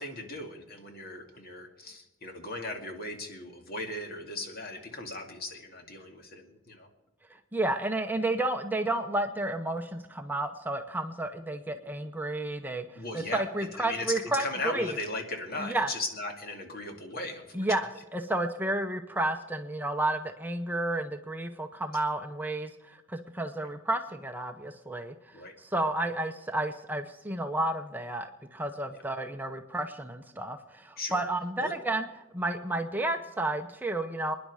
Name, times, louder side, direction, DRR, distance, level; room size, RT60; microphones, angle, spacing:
voice 1, 0.0-6.9 12.9-17.7 25.3-25.5 31.0-31.2 31.6-31.7, left 2 dB, 50° left, 4 dB, 2.4 m, -37 dB
voice 2, 7.3-14.9 15.6-15.9 17.5-25.1 25.6-32.1 32.3-34.3, right 2 dB, 10° right, 5 dB, 0.7 m, -31 dB
27.5 x 10.5 x 4.8 m, 1.1 s
head